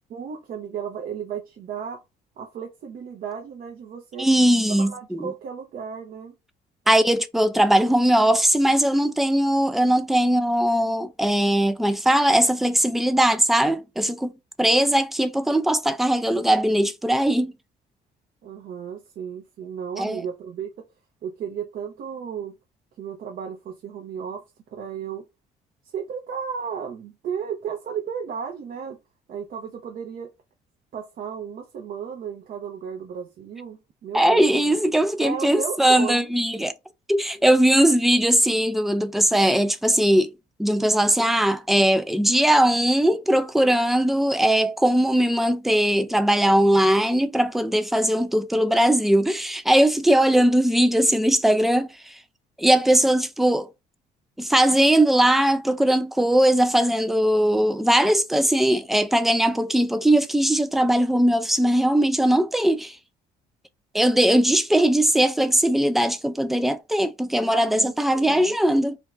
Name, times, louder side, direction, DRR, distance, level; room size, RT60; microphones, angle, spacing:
voice 1, 0.1-2.0 2.4-4.3 4.8-6.3 18.4-20.7 21.2-22.5 23.0-25.2 25.8-29.0 29.3-30.3 30.9-34.7 35.2-36.3 67.5-68.6, right 7 dB, 55° right, 0.7 m, -34 dB
voice 2, 4.2-5.3 6.9-14.3 14.6-17.5 20.0-20.2 34.1-36.7 37.1-40.3 40.6-52.2 52.6-53.7 54.4-63.0 63.9-69.0, right 1 dB, ahead, 0.3 m, -20 dB
2.6 x 2.3 x 3.0 m
cardioid pair, 110°, 17 cm